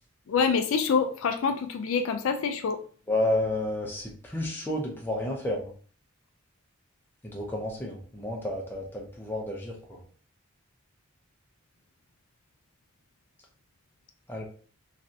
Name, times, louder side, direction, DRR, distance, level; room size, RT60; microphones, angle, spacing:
voice 1, 0.3-2.8, left 5 dB, 70° left, 7 dB, 0.3 m, -26 dB
voice 2, 3.1-5.7 7.3-10.0 14.3-14.4, left 1 dB, 10° left, -2 dB, 0.6 m, -31 dB
3.2 x 2.5 x 2.6 m, 0.42 s
head